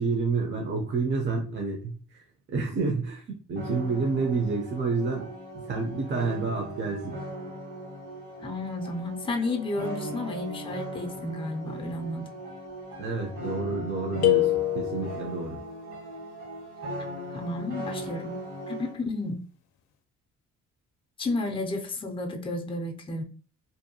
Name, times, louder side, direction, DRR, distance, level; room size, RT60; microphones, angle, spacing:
voice 1, 0.0-2.2 2.5-5.3 5.7-7.2 13.0-15.6, right 4 dB, 40° right, 2 dB, 0.6 m, -29 dB
sound 1, 3.6-19.0, right 1 dB, 75° right, 1.5 m, -39 dB
voice 2, 8.4-12.3 17.3-18.4 18.7-19.4 21.2-23.2, left 2 dB, 20° left, 4 dB, 0.5 m, -32 dB
sound 2, 14.2-15.4, left 17 dB, 65° left, 0.5 m, -24 dB
2.6 x 2.2 x 2.7 m, 0.40 s
cardioid pair, 90°, 30 cm